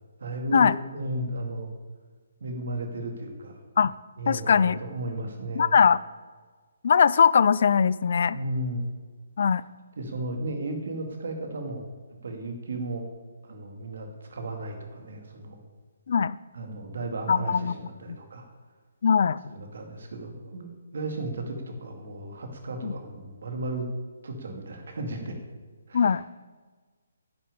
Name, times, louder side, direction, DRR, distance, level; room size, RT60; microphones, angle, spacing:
voice 1, 0.2-1.7 2.4-3.6 4.2-5.8 8.3-8.9 10.0-11.9 12.2-13.1 13.4-15.6 16.5-18.5 19.5-23.9 24.2-25.4 25.9-26.4, right 2 dB, 50° right, 5 dB, 2.2 m, -34 dB
voice 2, 4.3-4.8 5.5-6.0 6.8-8.4 9.4-9.6 16.1-16.4 17.3-17.7 18.1-18.2 19.0-19.4 22.8-22.9 25.9-26.2, left 6 dB, 40° left, 18 dB, 0.3 m, -21 dB
10.5 x 7.4 x 8.6 m, 1.4 s
hypercardioid pair, 180°, 0 cm